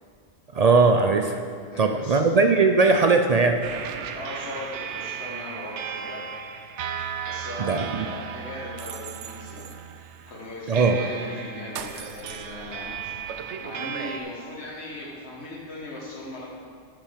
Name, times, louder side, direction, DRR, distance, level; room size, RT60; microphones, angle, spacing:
voice 1, 0.5-1.4 1.8-3.6 7.6-7.9 10.7-11.0, right 4 dB, 60° right, 5 dB, 0.4 m, -19 dB
voice 2, 1.7-2.2 4.1-6.2 7.3-9.6 10.3-13.2 13.6-16.4, left 1 dB, 70° left, -5 dB, 1.7 m, -38 dB
sound 1, 3.6-14.2, right 8 dB, 85° right, 0.9 m, -35 dB
12.0 x 5.7 x 5.1 m, 2.1 s
omnidirectional pair, 1.2 m